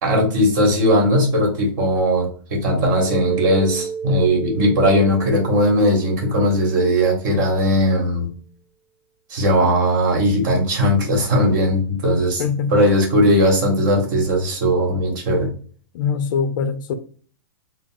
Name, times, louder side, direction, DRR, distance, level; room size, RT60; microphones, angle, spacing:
voice 1, 0.0-8.3 9.3-12.4 12.7-15.5, equal, 50° right, 1.4 m, -18 dB
Mallet percussion, 3.1-7.2, right 6 dB, 15° left, 0.7 m, -32 dB
voice 2, 12.4-12.7 15.9-16.9, left 6 dB, 55° left, 0.4 m, -22 dB
3.9 x 2.0 x 2.4 m
hypercardioid pair, 140°, 12 cm